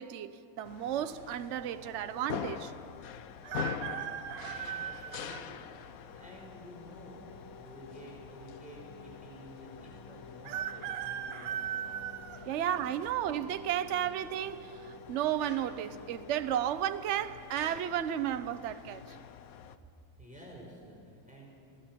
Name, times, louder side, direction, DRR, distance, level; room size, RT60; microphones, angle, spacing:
voice 1, 0.0-2.7 12.5-19.2, right 10 dB, 55° right, 0.8 m, -33 dB
sound 1, 0.6-19.8, left 8 dB, 60° left, 1.1 m, -46 dB
sound 2, 3.4-5.5 6.1-6.2 7.3-8.0 8.3-8.4 8.5-8.6 10.4-13.1 13.6-14.0 15.1-15.5 15.7-15.8 16.4-16.7 17.2-17.4, right 10 dB, 85° right, 1.4 m, -38 dB
voice 2, 4.4-7.2 7.6-12.1 20.2-21.9, equal, 5° right, 4.8 m, -51 dB
sound 3, 6.1-16.3, left 2 dB, 15° left, 2.1 m, -54 dB
28.0 x 17.5 x 6.0 m
omnidirectional pair, 1.9 m